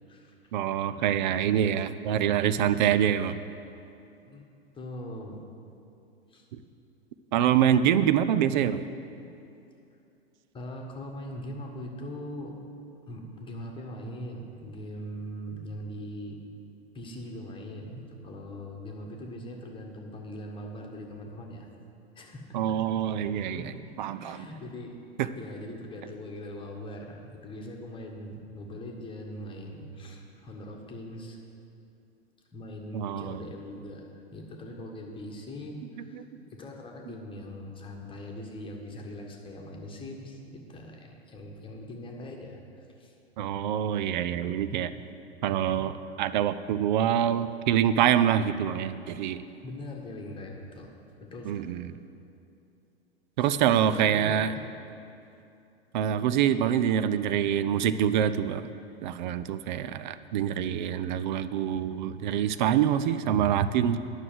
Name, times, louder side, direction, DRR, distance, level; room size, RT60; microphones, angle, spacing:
voice 1, 0.5-3.4 7.3-8.8 22.5-23.7 24.0-24.5 25.2-25.3 32.9-33.4 36.1-36.2 43.4-44.9 45.4-49.4 51.5-51.9 53.4-54.5 55.9-58.7 59.0-64.0, right 9 dB, 45° right, 12 dB, 0.5 m, -25 dB
voice 2, 4.7-5.4 6.3-6.5 10.5-12.5 13.1-16.4 16.9-21.7 22.1-22.6 23.1-23.7 24.2-25.0 25.3-31.4 32.5-36.2 36.5-43.1 49.6-50.9 51.2-51.8 53.4-53.5 53.9-54.6, left 1 dB, 15° left, 1 dB, 1.4 m, -41 dB
9.8 x 6.3 x 7.8 m, 2.7 s
figure-of-eight pair, 100°, 33 cm